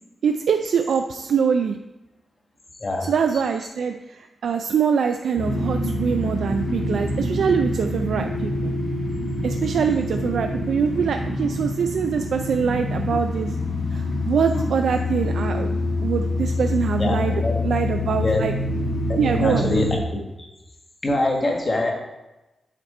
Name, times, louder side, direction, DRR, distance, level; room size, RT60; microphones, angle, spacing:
voice 1, 0.2-1.8 3.0-8.7 9.4-13.5 13.9-15.7 16.0-18.5 19.2-19.7, right 6 dB, 85° right, 6 dB, 0.3 m, -24 dB
sound 1, 5.4-20.0, left 2 dB, 75° left, 1.9 m, -26 dB
voice 2, 17.0-17.6 18.2-18.4 18.7-18.8 19.1-20.5 21.0-21.9, left 2 dB, 35° left, 1 dB, 1.6 m, -24 dB
7.9 x 4.3 x 4.3 m, 1.0 s
cardioid pair, 90°, 0 cm